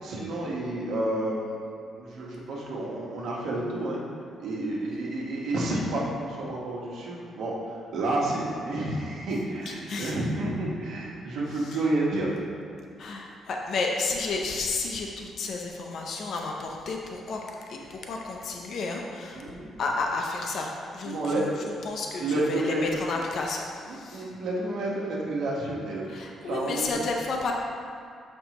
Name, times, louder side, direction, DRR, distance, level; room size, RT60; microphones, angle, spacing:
voice 1, 0.0-1.5 2.0-4.0 4.4-7.5 7.9-12.4 19.3-19.7 21.0-21.7 22.2-22.9 23.9-26.0 26.4-26.9, right 1 dB, 70° right, -3 dB, 1.3 m, -30 dB
voice 2, 9.7-10.1 11.5-11.8 13.0-17.4 17.7-19.4 19.8-21.5 21.8-24.3 26.1-27.5, left 3 dB, 55° left, 1 dB, 0.6 m, -32 dB
7.5 x 5.4 x 3.0 m, 2.3 s
cardioid pair, 145°, 0 cm